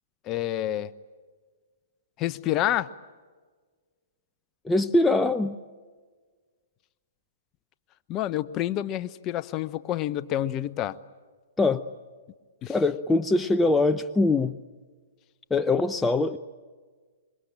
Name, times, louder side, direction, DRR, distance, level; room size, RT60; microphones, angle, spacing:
voice 1, 0.3-0.9 2.2-2.9 8.1-11.0 12.6-12.7, left 13 dB, 30° left, 14 dB, 0.9 m, -28 dB
voice 2, 4.6-5.6 11.6-11.8 12.7-14.6 15.5-16.4, left 2 dB, 10° left, 9 dB, 0.7 m, -23 dB
26.0 x 24.0 x 8.9 m, 1.5 s
hypercardioid pair, 125°, 0 cm